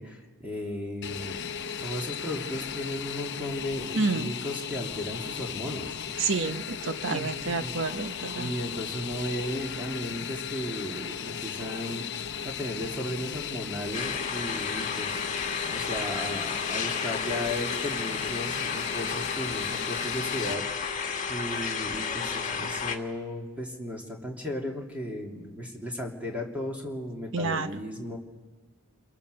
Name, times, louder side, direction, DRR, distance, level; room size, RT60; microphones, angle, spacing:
voice 1, 0.0-1.4 1.8-6.0 7.1-7.3 7.6-7.7 8.4-12.0 12.4-15.2 15.7-20.6 20.9-28.2, left 1 dB, 5° right, -1 dB, 3.0 m, -35 dB
Fixed-wing aircraft airplane, 1.0-20.5, left 7 dB, 55° left, 0.9 m, -36 dB
voice 2, 4.0-4.3 6.2-8.5 27.3-27.7, right 4 dB, 60° right, 9 dB, 1.0 m, -29 dB
sound 1, 13.9-23.0, left 5 dB, 35° left, 2.0 m, -32 dB
29.0 x 22.5 x 6.9 m, 1.4 s
head